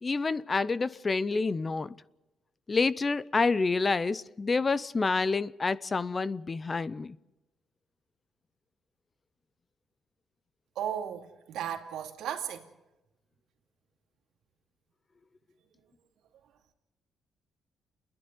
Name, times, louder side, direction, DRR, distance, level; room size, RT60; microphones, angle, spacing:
voice 1, 0.0-2.0 2.7-7.2, left 4 dB, 30° left, 0.6 m, -28 dB
voice 2, 10.8-12.7, right 9 dB, 80° right, 2.5 m, -35 dB
29.0 x 11.0 x 9.3 m
cardioid pair, 90°, 0 cm